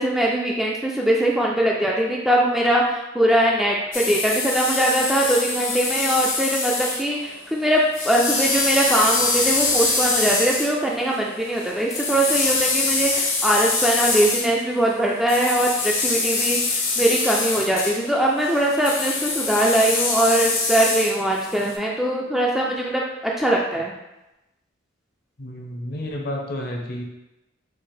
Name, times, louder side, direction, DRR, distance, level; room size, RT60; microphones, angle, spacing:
voice 1, 0.0-23.9, right 1 dB, ahead, -3 dB, 0.3 m, -21 dB
sound 1, 3.9-7.0 7.3-7.4 7.7-14.5 15.3-21.7, left 3 dB, 70° left, 1.0 m, -24 dB
voice 2, 25.4-27.0, left 1 dB, 50° left, 1 dB, 0.7 m, -30 dB
4.7 x 2.1 x 4.3 m, 0.97 s
head